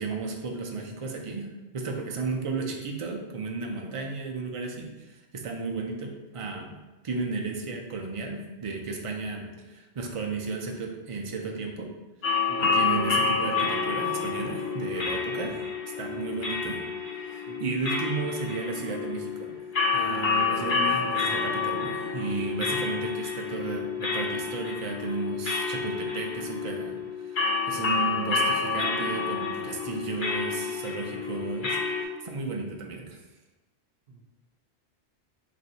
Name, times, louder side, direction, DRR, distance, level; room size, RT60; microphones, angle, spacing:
voice 1, 0.0-1.5 1.7-6.7 7.0-11.9 12.6-15.7 16.0-16.8 17.1-19.5 19.9-33.2, right 4 dB, 50° right, 1 dB, 0.3 m, -34 dB
voice 2, 2.3-2.7 3.8-4.0 5.7-5.9 12.5-12.7 15.1-15.5 16.1-16.3 17.5-17.6 34.1-34.2, right 3 dB, 70° right, -3 dB, 0.9 m, -46 dB
sound 1, 12.2-32.0, left 5 dB, 50° left, 0.8 m, -29 dB
3.2 x 2.6 x 4.1 m, 1.1 s
omnidirectional pair, 1.2 m